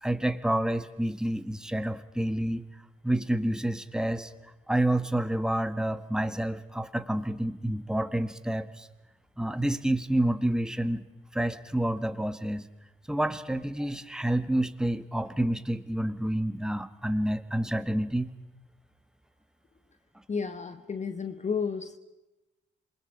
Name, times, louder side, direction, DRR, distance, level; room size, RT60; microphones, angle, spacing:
voice 1, 0.0-2.7 3.0-4.3 4.7-8.9 9.4-11.0 11.3-12.7 13.1-18.3, right 1 dB, 5° right, 10 dB, 1.3 m, -28 dB
voice 2, 20.3-22.0, left 5 dB, 35° left, 10 dB, 1.1 m, -32 dB
27.5 x 21.0 x 5.3 m, 1.0 s
supercardioid pair, 60°, 21 cm